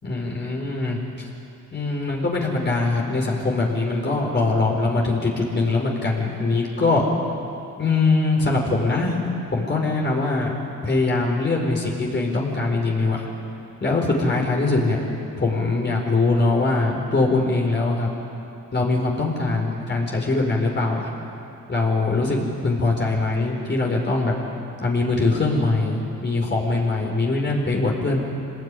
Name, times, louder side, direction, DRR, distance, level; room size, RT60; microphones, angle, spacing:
voice 1, 0.0-1.0 1.7-7.1 7.8-10.6 10.8-13.3 13.8-15.0 15.4-18.1 18.7-21.1 21.7-24.3 24.8-28.2, left 3 dB, 35° left, -1 dB, 4.8 m, -22 dB
24.5 x 20.0 x 10.0 m, 2.7 s
cardioid pair, 90°, 30 cm